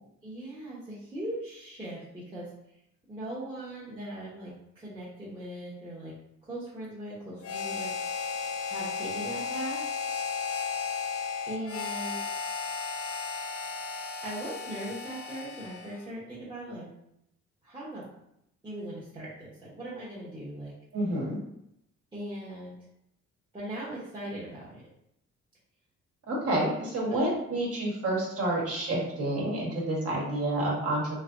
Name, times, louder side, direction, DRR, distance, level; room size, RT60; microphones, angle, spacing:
voice 1, 0.2-2.5 3.1-6.2 6.4-7.9 8.6-9.9 11.5-12.3 14.2-16.9 17.6-18.1 18.6-20.8 22.1-22.8 23.5-24.9 27.1-27.4 28.1-28.2, right 1 dB, 15° right, -10 dB, 1.0 m, -39 dB
Harmonica, 7.4-16.1, left 5 dB, 55° left, 0.5 m, -34 dB
voice 2, 20.9-21.4 26.3-31.0, right 1 dB, 50° right, -3 dB, 1.3 m, -29 dB
3.2 x 2.7 x 2.5 m, 0.78 s
cardioid pair, 90°, 30 cm